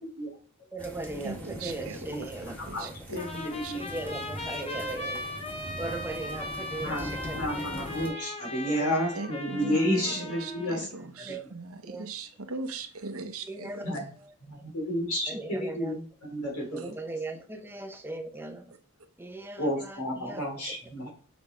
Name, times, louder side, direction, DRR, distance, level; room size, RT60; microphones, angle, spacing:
voice 1, 0.7-2.9 3.7-5.4 5.8-7.8 8.7-8.9 9.6-9.8 11.2-11.5 11.8-12.1 13.5-13.9 15.3-15.9 16.7-18.7 19.2-20.4, right 2 dB, 10° right, 0.7 m, -38 dB
sound 1, 0.8-8.1, left 1 dB, 10° left, 1.6 m, -41 dB
voice 2, 1.2-2.0 2.7-3.2 3.6-3.7 9.1-14.0 16.8-16.9, right 3 dB, 70° right, 1.0 m, -39 dB
voice 3, 3.1-3.9 6.8-11.4 13.8-14.1 14.4-17.0 19.6-21.1, equal, 80° left, 3.5 m, -31 dB
Trumpet, 3.2-10.8, left 2 dB, 25° left, 0.9 m, -39 dB
7.1 x 5.0 x 3.2 m
head